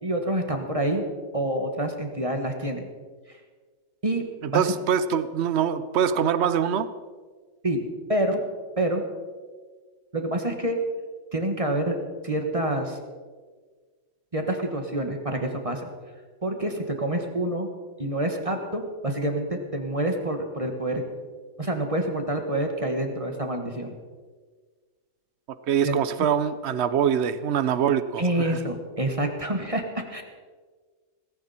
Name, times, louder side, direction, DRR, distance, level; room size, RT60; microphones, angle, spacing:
voice 1, 0.0-1.0 1.3-2.9 4.0-4.6 7.6-7.8 8.1-8.4 8.8-9.0 10.1-10.8 11.3-12.0 12.2-13.0 14.3-15.9 16.4-17.7 18.0-21.0 21.6-24.0 25.8-26.0 28.2-30.2, right 1 dB, 20° right, 4 dB, 1.5 m, -27 dB
voice 2, 4.5-6.9 25.7-28.6, right 8 dB, 75° right, 13 dB, 0.6 m, -24 dB
18.0 x 16.0 x 4.3 m, 1.5 s
omnidirectional pair, 2.0 m